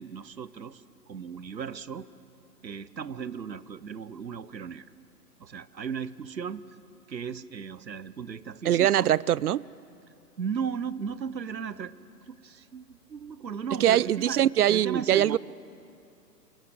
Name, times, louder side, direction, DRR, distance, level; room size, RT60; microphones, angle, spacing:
voice 1, 0.0-2.1 2.6-4.8 5.4-6.6 7.1-9.1 10.4-12.0 12.3-14.4 14.7-15.4, right 6 dB, 85° right, 0.9 m, -36 dB
voice 2, 8.6-9.6 13.8-15.4, right 11 dB, 65° right, 0.6 m, -22 dB
27.0 x 18.0 x 7.8 m
figure-of-eight pair, 125°, 50 cm